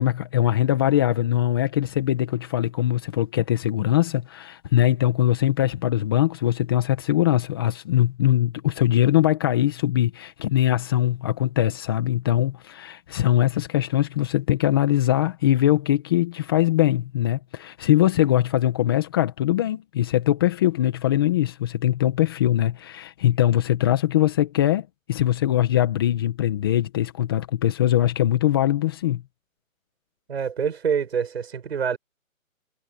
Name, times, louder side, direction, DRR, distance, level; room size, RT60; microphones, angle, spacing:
voice 1, 0.0-29.2, left 12 dB, 15° left, 1.6 m, -22 dB
voice 2, 30.3-32.0, right 7 dB, 50° right, 7.5 m, -26 dB
hypercardioid pair, 170°, 41 cm